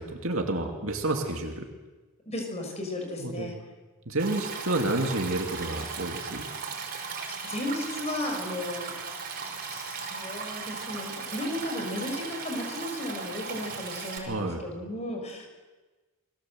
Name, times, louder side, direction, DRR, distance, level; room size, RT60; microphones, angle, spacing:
voice 1, 0.2-1.7 3.2-3.5 4.1-6.5 14.3-14.6, right 2 dB, 65° right, 2 dB, 2.6 m, -29 dB
voice 2, 2.3-3.6 7.1-8.9 9.6-15.5, left 1 dB, 30° left, 3 dB, 6.0 m, -35 dB
Stream, 4.2-14.2, right 5 dB, 40° right, 5.5 m, -37 dB
29.5 x 21.5 x 7.9 m, 1.2 s
head